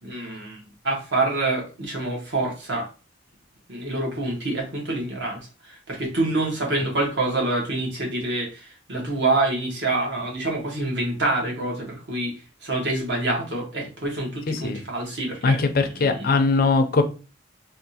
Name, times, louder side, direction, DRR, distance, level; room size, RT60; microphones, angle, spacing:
voice 1, 0.0-2.9 3.7-5.4 5.6-15.6 16.0-16.3, right 2 dB, 60° right, 1.1 m, -26 dB
voice 2, 14.5-14.8 15.4-17.0, left 3 dB, 45° left, 0.4 m, -20 dB
3.6 x 2.4 x 2.7 m
head